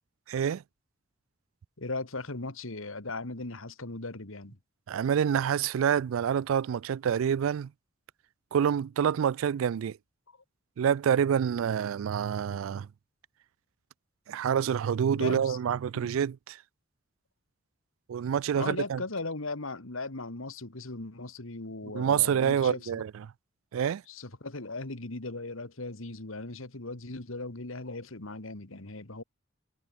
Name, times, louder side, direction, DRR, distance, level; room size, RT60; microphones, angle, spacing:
voice 1, 0.3-0.6 4.9-7.7 8.5-10.0 10.8-12.9 14.3-16.6 18.1-19.0 21.9-23.2 23.7-24.0, right 8 dB, 85° right, 0.3 m, -27 dB
voice 2, 1.8-4.6 10.3-10.4 15.1-15.6 16.0-16.1 18.6-23.0 24.1-29.2, left 3 dB, 85° left, 2.2 m, -38 dB
head